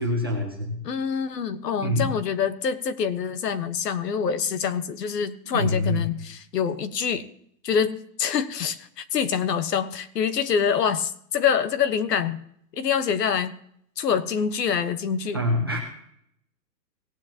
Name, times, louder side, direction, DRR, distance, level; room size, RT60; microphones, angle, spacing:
voice 1, 0.0-0.8 1.7-2.1 5.4-6.0 15.3-15.8, left 1 dB, 15° right, -2 dB, 0.6 m, -25 dB
voice 2, 0.8-7.3 7.6-12.4 12.8-13.6 14.0-15.4, left 7 dB, 70° left, 12 dB, 1.3 m, -25 dB
18.0 x 9.3 x 2.9 m, 0.68 s
hypercardioid pair, 180°, 50 cm